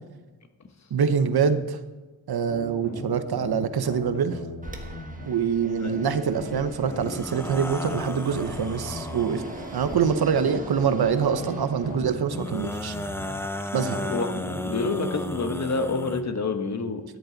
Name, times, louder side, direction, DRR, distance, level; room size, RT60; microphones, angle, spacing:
voice 1, 0.9-1.8 2.3-4.4 5.3-9.4 9.7-13.0 13.7-14.0, right 7 dB, 80° right, 11 dB, 0.9 m, -25 dB
sound 1, 2.5-5.3 5.8-9.3 9.8-13.3 13.8-15.1, left 2 dB, 90° left, 2.2 m, -37 dB
Fixed-wing aircraft airplane, 4.6-12.4, right 2 dB, 20° right, 1.4 m, -42 dB
sound 2, 6.8-10.3 12.3-16.2, left 1 dB, 5° left, 0.4 m, -34 dB
voice 2, 14.7-17.0, left 3 dB, 45° left, 7 dB, 1.1 m, -27 dB
13.5 x 10.5 x 4.0 m, 1.2 s
wide cardioid pair, 145°, 37 cm